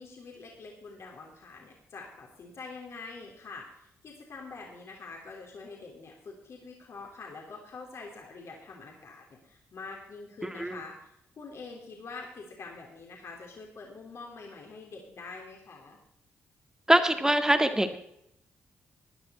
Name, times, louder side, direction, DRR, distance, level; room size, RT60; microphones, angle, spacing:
voice 1, 0.0-16.0, left 4 dB, 60° left, -1 dB, 3.3 m, -45 dB
voice 2, 16.9-18.0, right 1 dB, 10° right, 7 dB, 1.9 m, -23 dB
15.0 x 10.0 x 4.3 m, 0.75 s
supercardioid pair, 50°, 5 cm